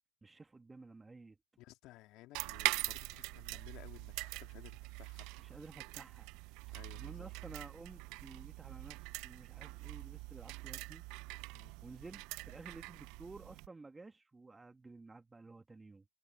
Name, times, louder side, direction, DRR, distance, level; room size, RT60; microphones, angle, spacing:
voice 1, 0.2-1.4 5.4-6.3 6.9-11.0 11.8-16.1, right 3 dB, 10° right, 1.9 m, -53 dB
voice 2, 1.6-5.3 6.7-7.6 11.5-11.7, left 18 dB, 40° left, 2.7 m, -57 dB
sound 1, 2.3-13.7, right 23 dB, 45° right, 0.9 m, -43 dB
hypercardioid pair, 110°, 0 cm